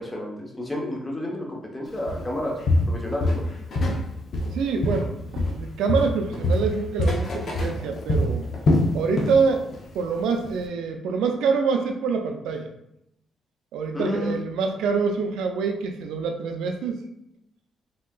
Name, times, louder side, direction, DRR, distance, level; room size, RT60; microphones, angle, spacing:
voice 1, 0.0-2.6 2.8-3.4 13.9-14.3, left 1 dB, 15° left, -1 dB, 0.8 m, -30 dB
Walk footsteps, 2.1-2.3 2.7-4.0 4.3-5.6 5.9-9.4 9.7-10.0 10.4-10.5, left 1 dB, 60° left, 0.5 m, -24 dB
voice 2, 4.5-8.5 8.9-9.6 9.9-12.7 13.7-17.0, right 5 dB, 90° right, 4 dB, 0.4 m, -25 dB
3.2 x 2.8 x 2.2 m, 0.81 s
cardioid pair, 80°, 0 cm